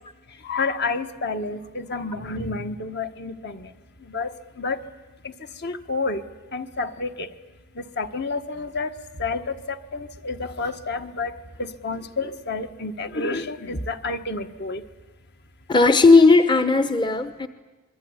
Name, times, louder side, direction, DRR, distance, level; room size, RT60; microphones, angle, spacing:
voice 1, 0.4-3.7 4.1-4.3 4.6-4.8 5.2-5.3 5.6-6.2 6.5-7.3 7.8-8.9 9.2-11.3 11.6-14.8, left 3 dB, 55° left, 8 dB, 1.5 m, -29 dB
voice 2, 15.7-17.5, left 3 dB, 20° left, 10 dB, 0.9 m, -16 dB
26.5 x 22.0 x 9.7 m, 1.2 s
head